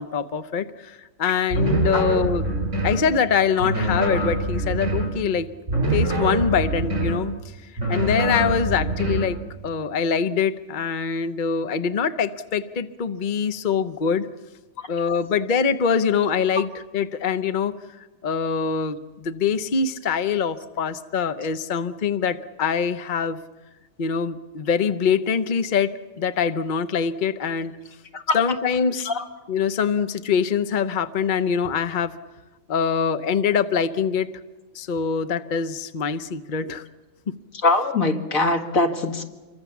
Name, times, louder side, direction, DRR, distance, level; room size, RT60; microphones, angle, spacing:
voice 1, 0.0-2.5 2.8-5.5 5.9-7.3 7.9-9.4 9.6-14.3 14.9-17.7 18.2-23.4 24.0-27.7 28.3-29.1 29.5-32.2 32.7-34.3 34.7-36.9, left 6 dB, 40° left, 11 dB, 0.9 m, -24 dB
sound 1, 1.5-3.1 3.6-5.2 5.7-7.3 7.8-9.4, right 2 dB, 65° right, 4.2 m, -24 dB
voice 2, 37.6-39.2, left 2 dB, 85° left, 4 dB, 2.4 m, -22 dB
26.5 x 23.0 x 7.2 m, 1.2 s
omnidirectional pair, 1.4 m